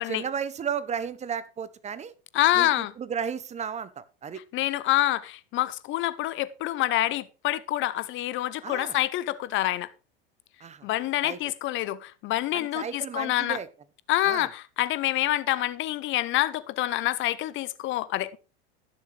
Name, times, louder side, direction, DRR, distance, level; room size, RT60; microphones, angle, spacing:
voice 1, 0.0-2.1 2.5-4.4 8.6-9.0 10.6-10.9 11.2-11.4 12.5-13.7 14.2-14.5, right 7 dB, 25° right, 0.8 m, -34 dB
voice 2, 2.3-2.9 4.5-9.9 10.8-13.6 14.1-18.4, left 15 dB, 40° left, 0.7 m, -27 dB
16.0 x 6.9 x 3.2 m
supercardioid pair, 115°, 30 cm